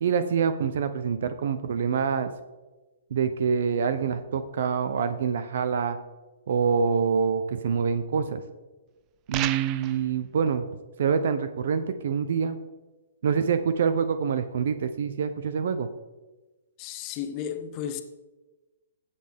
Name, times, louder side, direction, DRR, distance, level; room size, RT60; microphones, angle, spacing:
voice 1, 0.0-2.3 3.1-6.0 6.5-8.4 9.3-10.7 11.0-12.6 13.2-15.9, right 6 dB, 60° right, 0.7 m, -26 dB
sound 1, 9.3-10.0, right 14 dB, 25° right, 0.4 m, -31 dB
voice 2, 16.8-18.0, left 9 dB, 30° left, 1.0 m, -33 dB
16.0 x 6.7 x 3.6 m
hypercardioid pair, 155°, 0 cm